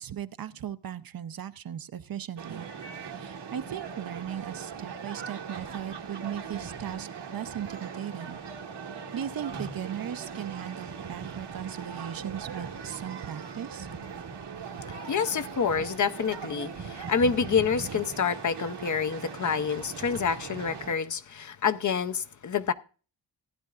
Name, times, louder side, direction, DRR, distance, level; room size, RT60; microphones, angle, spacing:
voice 1, 0.0-2.7 3.0-8.4 8.9-13.9, right 9 dB, 55° right, 0.6 m, -37 dB
sound 1, 2.4-20.9, right 6 dB, 75° right, 1.5 m, -40 dB
voice 2, 14.9-22.7, left 6 dB, 45° left, 0.6 m, -28 dB
16.0 x 10.5 x 2.4 m
wide cardioid pair, 115°, 42 cm